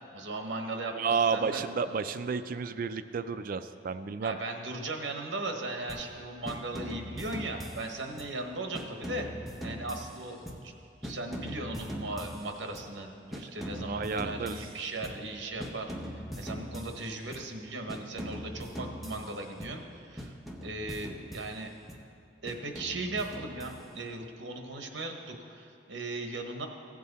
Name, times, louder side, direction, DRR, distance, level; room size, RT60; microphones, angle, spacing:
voice 1, 0.1-1.6 4.2-9.3 9.6-10.7 11.0-21.7 22.4-26.7, right 2 dB, 70° right, 4 dB, 1.1 m, -38 dB
voice 2, 0.9-4.4 13.3-13.4 13.8-14.7, right 5 dB, 50° right, 11 dB, 0.4 m, -31 dB
sound 1, 5.9-6.2 6.5-8.4 8.7-10.8 11.0-13.0 13.3-15.3 15.6-17.5 17.9-19.9 20.2-22.1 22.5-24.1, equal, ahead, 0.7 m, -42 dB
16.0 x 7.5 x 4.1 m, 2.7 s
head